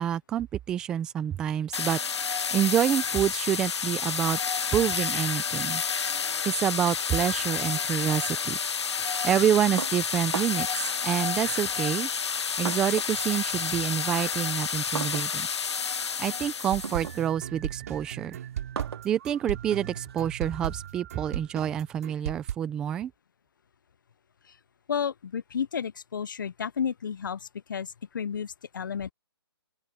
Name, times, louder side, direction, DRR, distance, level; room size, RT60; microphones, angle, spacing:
voice 1, 0.0-2.0 2.5-4.4 4.7-5.8 6.4-8.6 9.2-12.1 12.6-15.5 16.2-18.4 19.0-23.1, right 10 dB, 5° right, 0.5 m, -27 dB
sound 1, 1.7-17.2, left 6 dB, 85° left, 0.7 m, -30 dB
sound 2, 9.8-10.8 11.7-13.2 13.6-20.9, right 6 dB, 65° right, 2.5 m, -40 dB
sound 3, 16.7-22.6, right 10 dB, 35° right, 4.2 m, -36 dB
voice 2, 24.9-29.1, left 7 dB, 50° left, 0.6 m, -32 dB
open air
hypercardioid pair, 170°, 14 cm